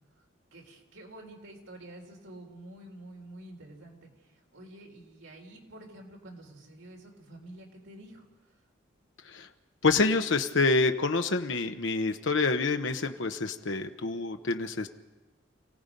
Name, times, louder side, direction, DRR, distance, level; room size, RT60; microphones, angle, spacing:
voice 1, 0.5-8.3, right 1 dB, 85° right, 1 dB, 4.2 m, -48 dB
voice 2, 9.8-14.9, left 3 dB, 75° left, 7 dB, 0.9 m, -27 dB
28.5 x 17.0 x 5.3 m, 1.1 s
head